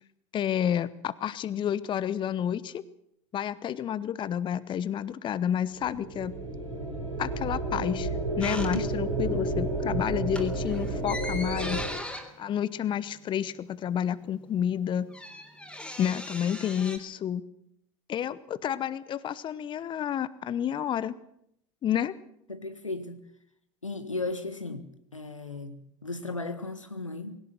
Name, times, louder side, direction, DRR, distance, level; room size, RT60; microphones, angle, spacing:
voice 1, 0.3-2.8 3.3-6.4 7.2-8.1 8.4-11.9 12.4-15.1 16.0-17.4 18.1-21.1 21.8-22.1, left 9 dB, 30° left, 18 dB, 0.9 m, -30 dB
sound 1, 5.8-11.9, right 2 dB, 90° right, 5.8 m, -31 dB
sound 2, 8.4-9.3 9.6-9.9 10.2-13.7 14.0-14.1 14.3-17.0, left 1 dB, 5° left, 3.6 m, -40 dB
voice 2, 22.5-23.2 23.8-24.9 25.1-27.4, left 2 dB, 90° left, 10 dB, 1.6 m, -35 dB
20.5 x 17.5 x 7.7 m, 0.75 s
figure-of-eight pair, 75°, 16 cm